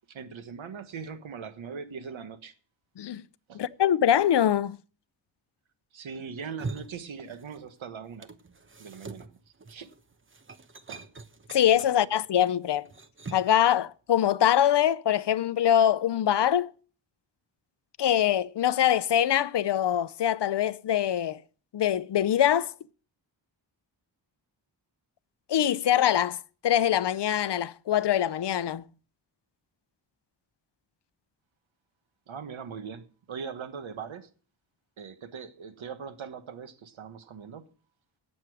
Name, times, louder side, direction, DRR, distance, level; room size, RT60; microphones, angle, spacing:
voice 1, 0.1-2.5 3.5-3.6 5.9-8.3 8.8-9.4 9.7-9.9 10.9-11.0 32.3-34.3 35.0-37.6, right 6 dB, 85° right, 1.5 m, -40 dB
voice 2, 3.5-4.8 11.5-12.9 13.3-16.7 18.0-21.4 21.7-22.7 25.5-28.8, left 10 dB, 60° left, 0.7 m, -24 dB
sound 1, 6.4-13.6, right 3 dB, 25° right, 1.0 m, -43 dB
17.5 x 7.2 x 4.9 m
wide cardioid pair, 100°, 46 cm